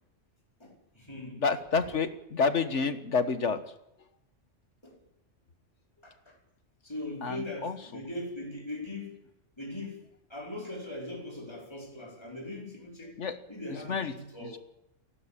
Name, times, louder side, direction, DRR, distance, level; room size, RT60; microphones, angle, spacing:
voice 1, 0.6-1.4 4.8-5.0 6.0-6.4 6.8-9.1 9.6-10.0 10.3-13.2 13.5-14.6, left 1 dB, 20° left, 4.7 m, -40 dB
voice 2, 1.4-3.6 7.2-8.0 13.2-13.4 13.7-14.1 14.4-14.6, left 5 dB, 70° left, 1.7 m, -29 dB
29.0 x 12.0 x 8.8 m
omnidirectional pair, 1.3 m